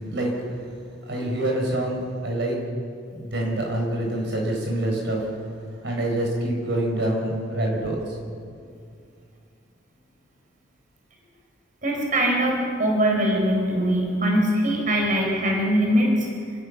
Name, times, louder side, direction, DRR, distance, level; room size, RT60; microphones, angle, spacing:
voice 1, 1.1-2.5 3.1-5.2 5.8-8.0, right 1 dB, 65° right, 1 dB, 5.9 m, -26 dB
voice 2, 11.8-16.3, equal, 45° right, 0 dB, 4.5 m, -22 dB
27.5 x 16.5 x 7.0 m, 2.4 s
head